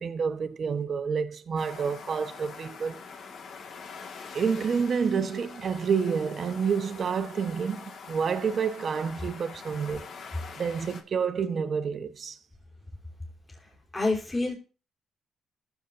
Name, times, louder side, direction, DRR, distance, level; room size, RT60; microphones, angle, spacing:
voice 1, 0.0-3.0 4.3-10.0 10.6-12.4, right 6 dB, 50° right, 1.0 m, -29 dB
sound 1, 1.6-11.0, left 5 dB, 60° left, 1.8 m, -44 dB
voice 2, 13.6-14.5, left 2 dB, 15° left, 3.9 m, -28 dB
15.0 x 7.4 x 2.6 m
cardioid pair, 90°, 0 cm